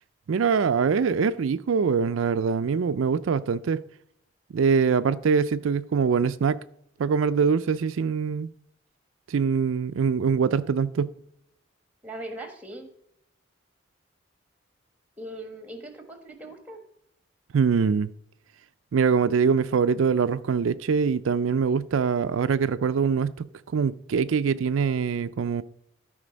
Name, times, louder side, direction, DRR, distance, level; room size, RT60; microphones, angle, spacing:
voice 1, 0.3-3.8 4.5-6.6 7.0-8.5 9.3-11.1 17.5-18.1 18.9-25.6, right 6 dB, 90° right, 0.4 m, -23 dB
voice 2, 12.0-12.9 15.2-16.8, right 1 dB, 5° right, 1.4 m, -39 dB
13.0 x 5.1 x 5.2 m
head